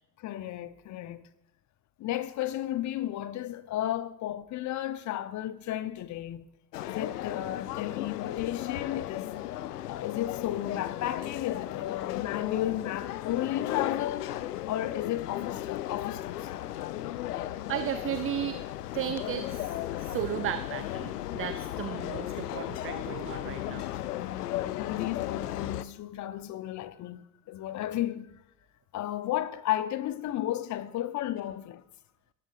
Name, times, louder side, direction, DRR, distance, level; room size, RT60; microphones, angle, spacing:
voice 1, 0.2-1.2 2.0-6.4 6.8-9.3 9.8-14.4 14.6-16.5 19.9-20.0 24.2-28.4 28.9-31.8, left 13 dB, 35° left, 1.0 m, -33 dB
sound 1, 6.7-25.8, left 13 dB, 70° left, 0.8 m, -35 dB
voice 2, 17.7-18.6 18.9-19.7 20.0-23.9, right 11 dB, 25° right, 0.7 m, -34 dB
28.5 x 13.5 x 2.5 m
figure-of-eight pair, 70°, 49 cm